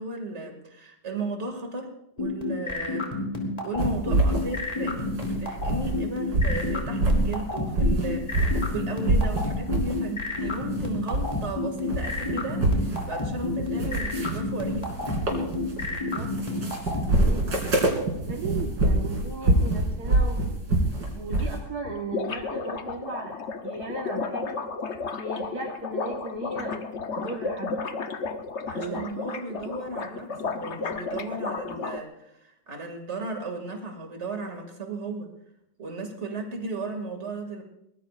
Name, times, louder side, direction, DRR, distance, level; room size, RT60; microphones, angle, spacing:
voice 1, 0.0-3.1 3.6-14.9 28.7-35.3 35.8-37.6, right 2 dB, 40° right, 3 dB, 2.6 m, -35 dB
sound 1, 2.2-17.0, left 3 dB, 20° left, 3.2 m, -30 dB
sound 2, 3.8-6.0 6.3-8.7 9.0-10.0 10.3-11.5 11.8-21.6, right 1 dB, 85° right, 3.6 m, -26 dB
voice 2, 15.9-17.8 18.3-20.6 21.1-24.6 25.2-26.8 27.2-27.8 28.7-29.1 30.0-30.2, right 3 dB, 65° right, 0 dB, 2.0 m, -37 dB
sound 3, 21.1-21.2 21.4-21.5 21.7-32.0, left 4 dB, 50° left, 1.1 m, -33 dB
23.0 x 19.5 x 2.5 m, 0.82 s
omnidirectional pair, 1.8 m